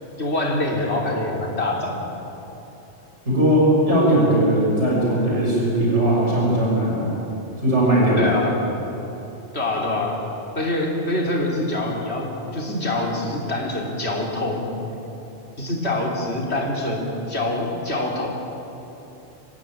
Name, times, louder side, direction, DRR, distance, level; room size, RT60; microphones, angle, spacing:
voice 1, 0.2-2.2 8.2-8.5 9.5-10.2 10.5-14.7 15.6-18.3, left 2 dB, 70° left, -1 dB, 3.7 m, -25 dB
voice 2, 3.3-7.2 7.6-8.4, right 1 dB, 90° right, -5 dB, 7.1 m, -19 dB
27.0 x 15.0 x 9.2 m, 3.0 s
omnidirectional pair, 1.2 m